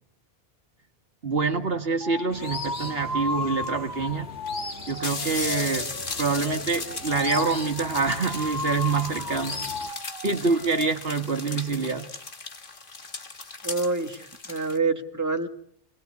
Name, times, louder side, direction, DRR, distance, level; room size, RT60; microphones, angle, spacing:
voice 1, 1.2-4.3 4.9-5.9 6.2-9.6 10.2-12.1, right 4 dB, 70° right, 6 dB, 2.0 m, -26 dB
sound 1, 2.0-10.9, left 2 dB, 20° left, 1.4 m, -35 dB
sound 2, 2.3-9.9, left 3 dB, 80° left, 2.0 m, -41 dB
sound 3, 3.6-3.7 4.5-4.6 4.8-14.8, left 3 dB, 55° left, 1.8 m, -37 dB
voice 2, 13.6-15.5, right 3 dB, 15° right, 5 dB, 2.0 m, -27 dB
27.0 x 20.5 x 9.6 m, 0.69 s
omnidirectional pair, 1.0 m